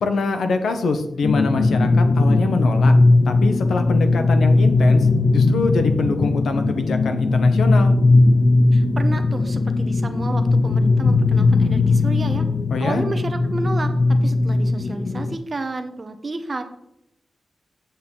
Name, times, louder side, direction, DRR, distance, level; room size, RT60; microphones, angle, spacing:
voice 1, 0.0-2.9 3.2-7.9 12.7-13.0, left 3 dB, 80° left, 7 dB, 1.0 m, -24 dB
sound 1, 1.2-15.4, left 3 dB, 40° left, 0.4 m, -18 dB
voice 2, 8.7-12.4 12.8-16.6, right 3 dB, 30° right, 8 dB, 0.9 m, -31 dB
8.3 x 7.8 x 3.9 m, 0.80 s
wide cardioid pair, 160°, 0 cm